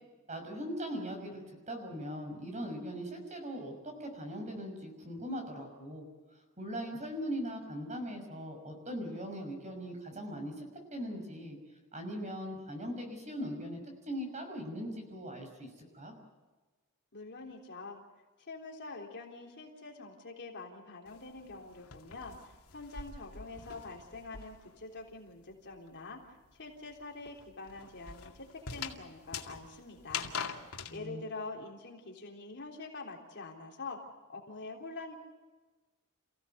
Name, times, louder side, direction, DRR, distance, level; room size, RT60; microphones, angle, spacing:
voice 1, 0.3-6.0 6.6-10.7 10.9-11.6 11.9-15.7 15.9-16.1 30.9-31.2, equal, 35° right, 4 dB, 6.1 m, -40 dB
voice 2, 17.1-18.0 18.4-26.2 26.5-30.3 30.9-35.2, left 3 dB, 50° left, 1 dB, 3.6 m, -45 dB
sound 1, 21.1-24.8 25.1-31.0, left 6 dB, 80° left, 2.3 m, -43 dB
29.0 x 16.5 x 8.0 m, 1.2 s
head